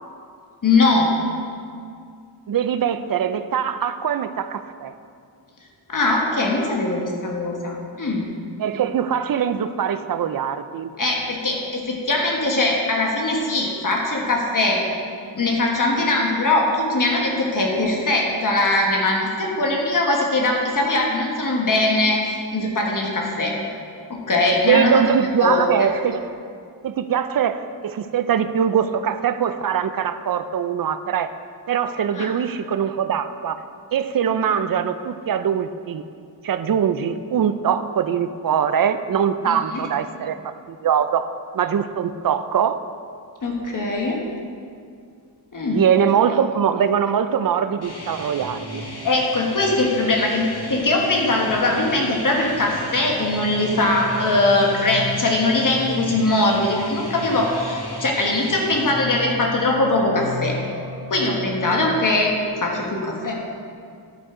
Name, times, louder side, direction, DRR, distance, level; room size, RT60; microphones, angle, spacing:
voice 1, 0.6-1.1 5.9-8.3 11.0-14.8 15.4-22.2 22.5-23.5 24.1-25.0 25.4-25.9 32.2-32.3 39.5-39.8 43.4-44.2 45.5-45.8 49.0-60.5 61.1-63.3, left 2 dB, 45° left, -1 dB, 1.4 m, -21 dB
voice 2, 2.5-4.9 8.6-10.9 24.7-26.3 26.8-31.3 31.7-33.6 33.9-36.0 36.4-41.2 41.5-42.8 45.7-48.8, right 8 dB, 55° right, 11 dB, 0.5 m, -22 dB
sound 1, 47.7-62.5, left 2 dB, 25° right, 1.5 m, -37 dB
sound 2, 47.8-58.8, left 1 dB, 65° left, 2.2 m, -36 dB
10.5 x 9.3 x 3.7 m, 2.3 s
wide cardioid pair, 165°, 42 cm